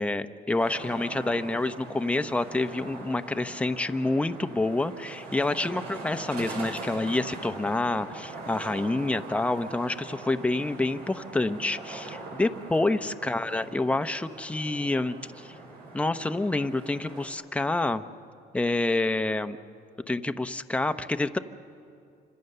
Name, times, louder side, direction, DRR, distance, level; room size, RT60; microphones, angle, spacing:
voice 1, 0.0-15.5 15.9-18.0 18.5-19.6 20.1-21.4, left 2 dB, 5° left, 9 dB, 0.8 m, -28 dB
sound 1, 0.6-17.3, right 3 dB, 75° right, 7.5 m, -42 dB
28.5 x 26.0 x 6.8 m, 2.5 s
cardioid pair, 110°, 17 cm